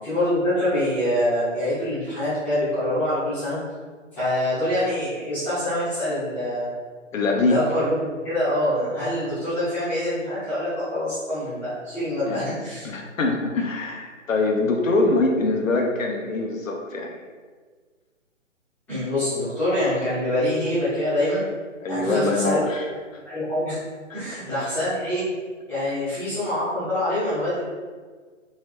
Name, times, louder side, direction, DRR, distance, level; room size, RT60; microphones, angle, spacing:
voice 1, 0.0-3.6 4.1-6.7 7.4-12.9 18.9-21.4 21.9-22.7 23.2-23.8 24.1-25.2 25.7-27.6, left 1 dB, 5° left, -15 dB, 0.8 m, -25 dB
voice 2, 7.1-7.6 12.3-12.4 12.8-17.2 21.8-22.8 24.1-24.2, left 3 dB, 80° left, 2 dB, 0.9 m, -23 dB
4.0 x 3.1 x 3.2 m, 1.5 s
hypercardioid pair, 160°, 39 cm